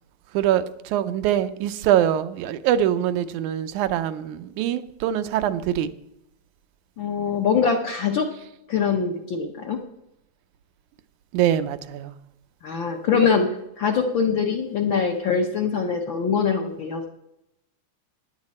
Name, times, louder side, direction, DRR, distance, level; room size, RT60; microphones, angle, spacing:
voice 1, 0.3-5.9 11.3-12.1, right 11 dB, 85° right, 11 dB, 2.2 m, -23 dB
voice 2, 7.0-8.3 8.7-9.8 12.6-17.1, left 6 dB, 60° left, 3 dB, 1.4 m, -23 dB
15.5 x 10.5 x 4.3 m, 0.81 s
omnidirectional pair, 3.4 m